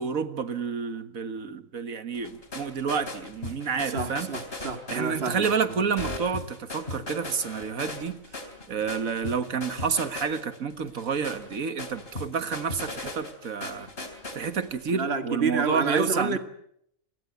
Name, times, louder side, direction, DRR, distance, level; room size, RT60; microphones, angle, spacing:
voice 1, 0.0-4.3 4.9-8.4 8.7-13.9 14.4-16.4, right 6 dB, 85° right, 1.9 m, -29 dB
sound 1, 2.1-14.9, left 2 dB, 45° left, 3.6 m, -38 dB
voice 2, 3.9-5.5 14.9-16.4, right 5 dB, 50° right, 2.1 m, -29 dB
28.0 x 20.5 x 8.1 m
omnidirectional pair, 1.4 m